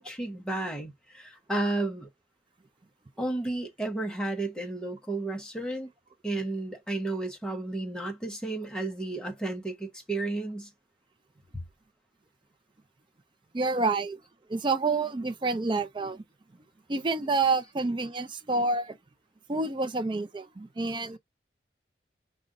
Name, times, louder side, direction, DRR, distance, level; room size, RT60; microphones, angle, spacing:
voice 1, 0.0-2.1 3.2-5.9 6.2-10.7 11.5-11.6, right 2 dB, 5° left, 0.9 m, -32 dB
voice 2, 13.5-14.2 14.5-16.2 16.9-19.0 19.5-21.2, right 3 dB, 25° right, 0.4 m, -28 dB
5.1 x 2.4 x 3.7 m
head